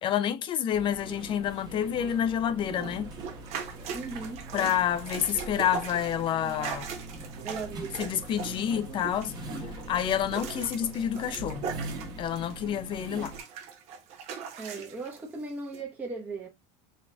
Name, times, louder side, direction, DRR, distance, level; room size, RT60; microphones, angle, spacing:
voice 1, 0.0-3.1 4.5-6.9 8.0-9.3 9.9-11.7 12.2-13.3, left 9 dB, 35° left, 0.6 m, -28 dB
sound 1, 0.7-13.4, right 2 dB, 30° right, 1.3 m, -42 dB
sound 2, 2.7-12.7 13.0-15.2 15.7-15.8, right 6 dB, 50° right, 1.1 m, -40 dB
voice 2, 3.9-4.4 7.4-8.0 14.6-16.5, right 3 dB, 10° right, 1.0 m, -37 dB
4.1 x 3.0 x 3.5 m
cardioid pair, 140°, 14 cm